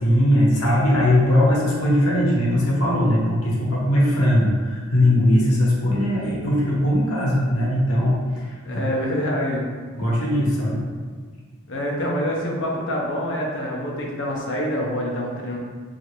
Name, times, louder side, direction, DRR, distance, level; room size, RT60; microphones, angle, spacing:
voice 1, 0.0-8.8 10.0-10.9, left 1 dB, 90° left, -4 dB, 0.8 m, -20 dB
voice 2, 8.6-9.7 11.7-15.6, equal, 55° left, -2 dB, 0.6 m, -26 dB
3.1 x 2.4 x 3.0 m, 1.5 s
head